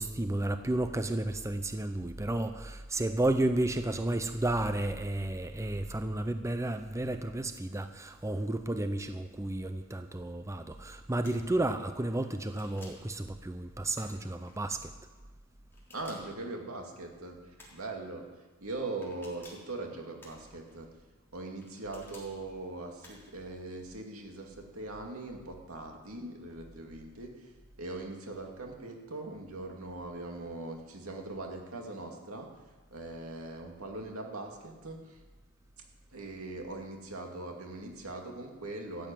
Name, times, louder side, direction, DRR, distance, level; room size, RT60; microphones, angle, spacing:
voice 1, 0.0-14.9, right 1 dB, 15° right, 9 dB, 0.6 m, -32 dB
sound 1, 11.2-11.6 12.4-13.1 13.9-14.6 15.7-16.5 17.6-17.9 19.0-19.7 20.2-20.8 21.6-22.3 23.0-23.4, left 2 dB, 10° left, 3.8 m, -54 dB
voice 2, 15.9-17.4 17.7-18.2 18.6-20.9 21.3-27.5 27.8-32.5 32.9-35.2 36.1-39.1, right 2 dB, 85° right, 2 dB, 2.5 m, -41 dB
13.5 x 8.0 x 9.0 m, 1.3 s
head